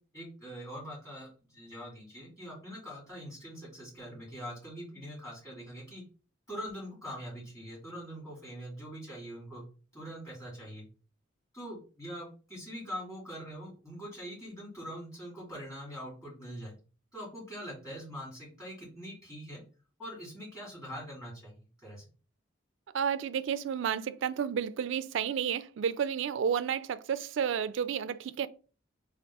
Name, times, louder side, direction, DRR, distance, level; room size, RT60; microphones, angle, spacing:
voice 1, 0.1-6.0 6.5-9.6 9.9-10.8 11.5-16.7 17.1-19.6 20.0-22.1, equal, 15° left, 1.9 m, -43 dB
voice 2, 22.9-28.5, right 7 dB, 70° right, 0.3 m, -31 dB
3.4 x 2.4 x 4.0 m
head